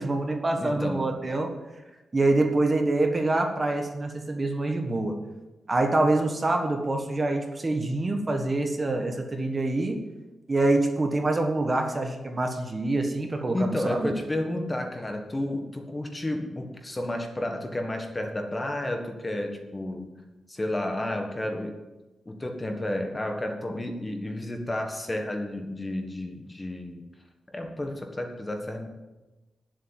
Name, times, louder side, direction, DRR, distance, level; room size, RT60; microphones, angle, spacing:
voice 1, 0.0-1.5 2.1-5.1 5.7-10.0 10.5-14.1, right 2 dB, 30° right, 4 dB, 1.5 m, -25 dB
voice 2, 0.5-1.1 13.5-20.1 20.5-21.7 22.3-27.0 27.5-28.9, left 1 dB, 20° left, 4 dB, 1.6 m, -31 dB
9.9 x 7.8 x 8.9 m, 1.1 s
wide cardioid pair, 110°, 0 cm